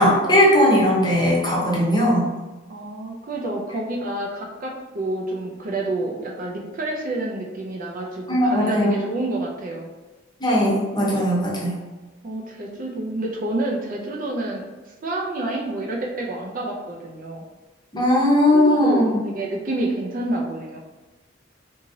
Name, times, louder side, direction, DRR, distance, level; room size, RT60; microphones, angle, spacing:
voice 1, 0.0-2.3 8.3-9.0 10.4-11.8 17.9-19.2, left 1 dB, 20° left, -5 dB, 0.8 m, -18 dB
voice 2, 2.7-9.9 12.2-14.7 15.0-17.4 18.5-20.8, right 2 dB, 45° right, 0 dB, 0.4 m, -28 dB
2.8 x 2.7 x 2.6 m, 1.2 s
head